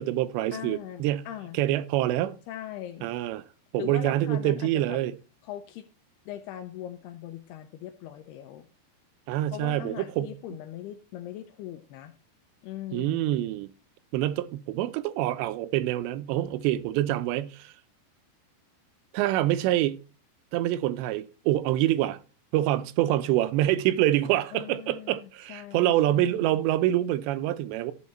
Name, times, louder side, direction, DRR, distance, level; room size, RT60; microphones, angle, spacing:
voice 1, 0.0-1.3 1.5-2.4 3.0-3.5 3.7-5.1 9.3-10.3 12.9-13.7 14.1-17.7 19.1-20.0 20.5-22.2 22.5-27.9, right 13 dB, 85° right, 2.7 m, -26 dB
voice 2, 0.5-1.6 2.5-3.1 3.8-5.0 5.4-5.9 6.3-8.7 9.5-12.1 12.6-13.4 24.5-26.6, left 12 dB, 80° left, 2.4 m, -40 dB
12.5 x 4.7 x 4.2 m
omnidirectional pair, 5.1 m